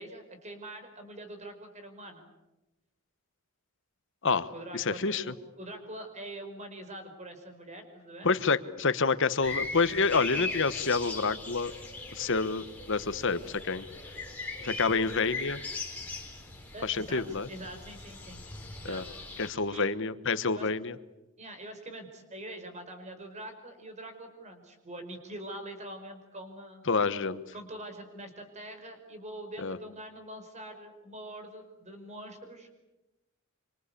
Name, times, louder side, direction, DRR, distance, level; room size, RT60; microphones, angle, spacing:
voice 1, 0.0-2.3 4.5-8.3 16.7-18.4 18.8-19.0 19.7-19.9 20.5-20.7 21.4-26.8 27.5-32.7, right 1 dB, 35° right, 7 dB, 5.0 m, -44 dB
voice 2, 4.2-5.2 8.2-11.7 12.1-13.9 14.6-15.6 16.8-17.5 18.9-19.0 19.4-20.9 26.9-27.4 29.6-29.8, left 4 dB, 60° left, 13 dB, 1.3 m, -28 dB
sound 1, 9.4-19.5, left 3 dB, 5° left, 4.7 m, -40 dB
26.5 x 26.0 x 8.5 m, 0.99 s
head